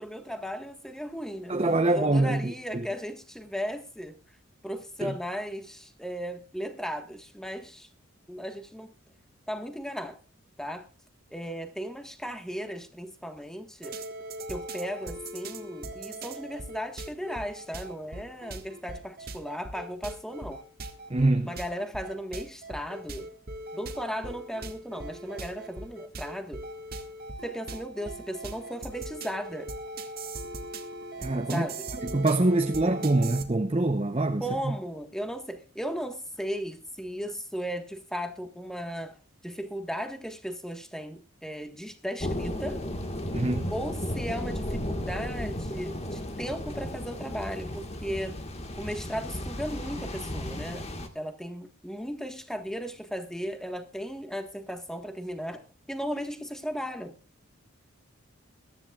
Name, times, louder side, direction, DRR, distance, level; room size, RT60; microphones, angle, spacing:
voice 1, 0.0-1.6 1.8-4.2 4.6-7.9 8.3-8.9 9.5-10.2 10.6-10.9 11.3-14.0 14.5-20.6 21.4-23.3 23.7-26.6 27.4-29.7 31.5-31.9 34.4-39.2 39.4-42.8 43.7-48.4 48.8-50.9 51.1-57.1, equal, ahead, 1.5 m, -36 dB
voice 2, 1.5-2.9 5.0-5.1 21.1-21.5 31.2-31.7 32.0-34.4 43.3-43.7, right 2 dB, 25° right, 0.7 m, -25 dB
sound 1, 13.8-33.4, right 2 dB, 45° right, 1.8 m, -40 dB
sound 2, 42.2-51.1, left 1 dB, 30° left, 1.6 m, -34 dB
22.0 x 13.0 x 2.4 m
head